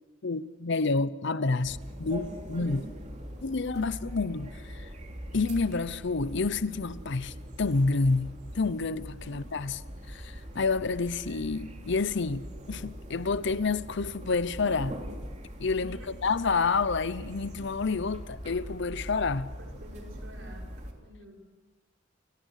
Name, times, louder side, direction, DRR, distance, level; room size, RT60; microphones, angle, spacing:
voice 1, 0.2-2.9 3.4-4.9 5.3-9.8 10.1-15.0 15.6-19.5, left 4 dB, 65° left, 0.8 m, -29 dB
sound 1, 1.6-20.9, equal, 35° right, 3.1 m, -42 dB
voice 2, 19.6-20.6 21.0-21.4, equal, 70° right, 6.1 m, -49 dB
29.0 x 18.0 x 6.5 m
head